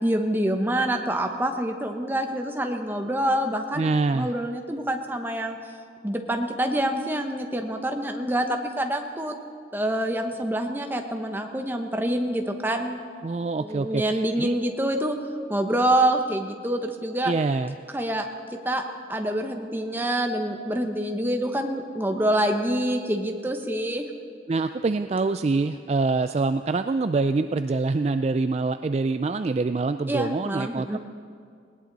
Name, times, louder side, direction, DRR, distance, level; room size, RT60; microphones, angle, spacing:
voice 1, 0.0-5.6 6.0-9.3 9.7-13.0 13.6-15.2 15.5-17.3 17.9-18.3 18.5-18.8 19.1-24.0 30.1-31.0, right 1 dB, 10° right, 4 dB, 1.1 m, -26 dB
voice 2, 3.7-4.3 13.2-14.6 17.2-17.7 24.5-31.0, right 3 dB, 35° right, 10 dB, 0.3 m, -25 dB
19.5 x 18.0 x 4.1 m, 2.3 s
head